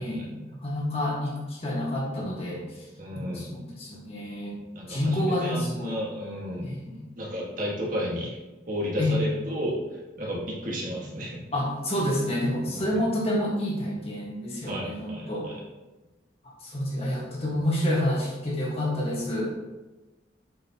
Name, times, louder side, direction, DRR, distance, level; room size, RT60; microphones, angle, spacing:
voice 1, 0.0-2.6 3.1-4.6 4.9-6.0 6.6-7.0 9.0-9.2 11.5-15.5 16.6-19.5, left 1 dB, 30° left, -3 dB, 1.7 m, -28 dB
voice 2, 3.0-3.5 4.7-6.7 7.2-8.3 8.7-11.4 12.7-13.0 14.6-15.6, equal, 45° right, -4 dB, 1.8 m, -33 dB
7.7 x 6.5 x 3.0 m, 1.1 s
head